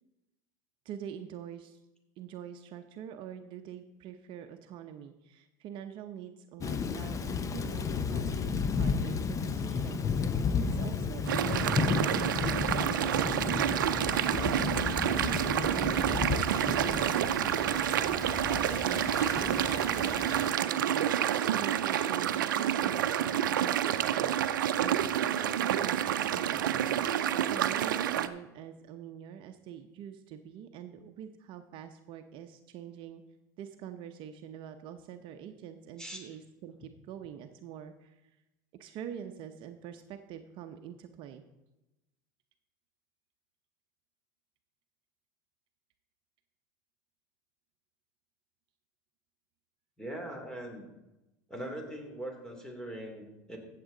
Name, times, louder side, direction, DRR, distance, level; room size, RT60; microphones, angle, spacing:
voice 1, 0.8-1.8 2.2-24.4 24.8-27.1 27.5-33.2 33.6-38.4 38.8-41.4, right 9 dB, 55° right, 7 dB, 0.8 m, -45 dB
Thunder / Rain, 6.6-20.5, left 5 dB, 30° left, 0.9 m, -33 dB
sound 1, 11.3-28.3, right 10 dB, 90° right, 0.6 m, -29 dB
voice 2, 50.0-50.9 51.5-53.6, right 1 dB, 5° left, 3 dB, 2.8 m, -41 dB
15.0 x 7.5 x 3.9 m, 0.98 s
hypercardioid pair, 95°, 10 cm